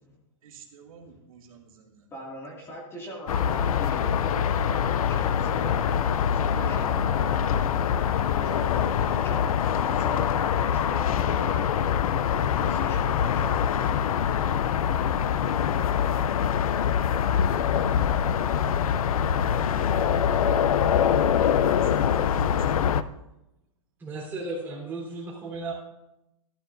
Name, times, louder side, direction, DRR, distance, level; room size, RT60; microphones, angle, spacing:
voice 1, 0.4-2.1 21.5-23.0, right 6 dB, 75° right, 0 dB, 2.3 m, -52 dB
voice 2, 2.1-9.5 9.8-11.7 12.6-13.8, equal, 15° left, -3 dB, 2.3 m, -40 dB
sound 1, 3.3-23.0, left 8 dB, 80° left, 0.6 m, -24 dB
voice 3, 24.0-25.7, right 3 dB, 10° right, -4 dB, 3.8 m, -35 dB
14.0 x 12.5 x 2.6 m, 0.90 s
hypercardioid pair, 155°, 18 cm